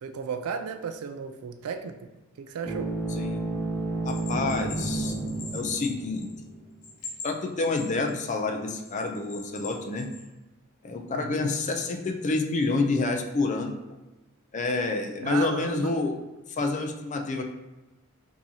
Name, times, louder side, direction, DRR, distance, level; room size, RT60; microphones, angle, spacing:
voice 1, 0.0-2.0 2.4-2.9 11.1-11.5 15.2-15.9, right 6 dB, 85° right, 7 dB, 0.4 m, -34 dB
sound 1, 2.6-6.6, right 2 dB, 15° left, 1.1 m, -31 dB
voice 2, 3.2-3.5 4.0-5.1 5.5-6.3 7.2-10.1 10.8-13.7 14.5-16.1 16.5-17.4, left 3 dB, 35° left, 4 dB, 0.4 m, -28 dB
Bell, 4.1-6.5 6.8-8.3 8.8-10.2, left 4 dB, 80° left, 1.0 m, -41 dB
4.7 x 2.7 x 2.7 m, 1.1 s
head